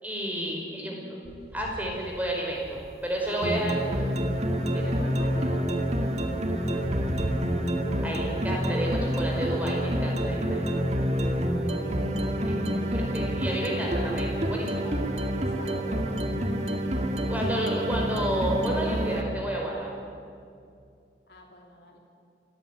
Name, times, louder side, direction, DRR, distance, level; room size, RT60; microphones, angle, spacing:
voice 1, 0.0-1.2 1.5-3.7 4.7-4.8 8.0-10.6 12.4-14.9 17.3-19.9, right 1 dB, 10° right, -1 dB, 5.1 m, -31 dB
voice 2, 0.6-1.5 3.2-3.8 4.8-7.5 15.4-16.2 21.3-22.0, left 1 dB, 65° left, 0 dB, 2.9 m, -46 dB
sound 1, 1.2-3.5 3.8-7.6, equal, 65° right, 3.9 m, -43 dB
sound 2, 3.4-19.2, equal, 35° right, 2.0 m, -28 dB
27.0 x 14.5 x 10.0 m, 2.4 s
head